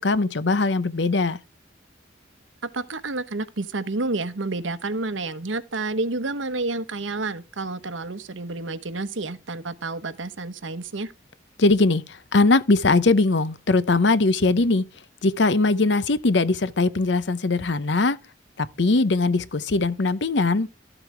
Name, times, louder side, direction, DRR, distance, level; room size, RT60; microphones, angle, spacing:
voice 1, 0.0-1.4 11.6-14.8 15.2-18.2 18.6-20.7, left 3 dB, 70° left, 0.8 m, -21 dB
voice 2, 2.6-11.1, right 3 dB, 90° right, 1.1 m, -29 dB
13.0 x 7.9 x 3.4 m
head